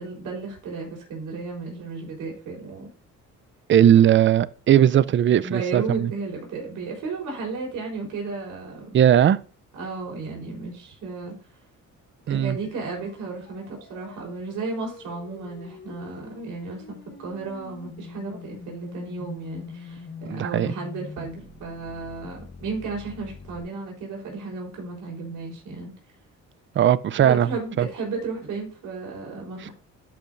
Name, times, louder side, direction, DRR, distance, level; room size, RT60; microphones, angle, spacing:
voice 1, 0.0-2.9 5.4-8.9 9.7-11.3 12.3-25.9 27.2-29.7, right 4 dB, 85° right, 3.8 m, -34 dB
voice 2, 3.7-6.1 8.9-9.4 12.3-12.6 20.2-20.7 26.8-27.9, right 10 dB, 40° right, 0.4 m, -18 dB
sound 1, 12.3-23.6, left 5 dB, 35° left, 1.2 m, -43 dB
12.0 x 5.4 x 2.6 m
cardioid pair, 90°, 30 cm